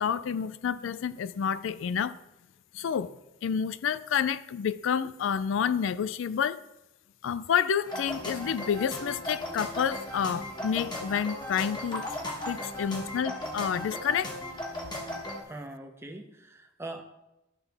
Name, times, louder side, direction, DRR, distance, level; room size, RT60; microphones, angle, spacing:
voice 1, 0.0-2.2 2.7-6.6 7.2-12.1 12.5-14.3, left 7 dB, 90° left, 0.4 m, -29 dB
sound 1, 7.9-15.4, left 1 dB, 20° left, 1.2 m, -37 dB
voice 2, 15.4-17.0, right 2 dB, 15° right, 0.8 m, -42 dB
12.5 x 5.6 x 3.4 m
head